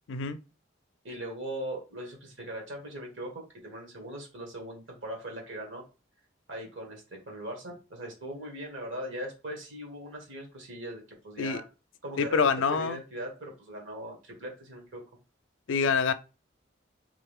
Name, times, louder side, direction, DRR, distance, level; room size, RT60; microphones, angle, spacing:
voice 1, 0.1-0.4 11.4-11.6 12.2-13.0 15.7-16.1, left 5 dB, 85° left, 0.4 m, -26 dB
voice 2, 1.0-5.8 6.5-11.6 12.0-15.0, right 1 dB, 80° right, 1.7 m, -40 dB
3.7 x 3.2 x 3.5 m
head